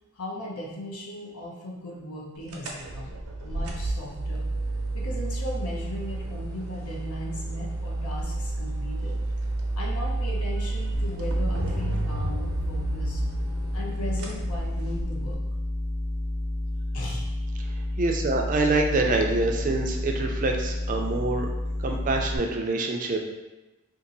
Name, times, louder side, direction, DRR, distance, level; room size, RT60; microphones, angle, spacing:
voice 1, 0.1-3.1 3.4-4.5 4.9-9.2 9.7-13.2 13.7-15.4 16.9-17.2, left 1 dB, 85° left, -3 dB, 0.8 m, -37 dB
sound 1, 2.5-15.3, right 2 dB, 90° right, 0.6 m, -31 dB
sound 2, 10.9-22.4, left 1 dB, 40° left, 0.5 m, -30 dB
voice 2, 17.6-21.5 21.8-23.2, right 2 dB, 35° right, 2 dB, 0.3 m, -26 dB
2.7 x 2.6 x 3.9 m, 1.1 s
head